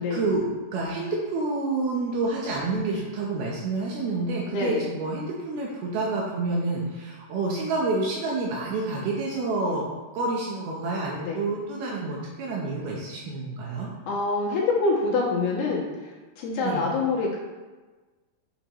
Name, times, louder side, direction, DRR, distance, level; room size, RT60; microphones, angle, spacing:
voice 1, 0.0-9.9 10.1-13.9 16.6-16.9, right 3 dB, 75° right, -3 dB, 2.7 m, -28 dB
voice 2, 4.5-4.9 11.2-11.4 14.1-17.4, left 3 dB, 75° left, -3 dB, 3.4 m, -26 dB
9.1 x 7.0 x 3.1 m, 1.3 s
omnidirectional pair, 4.8 m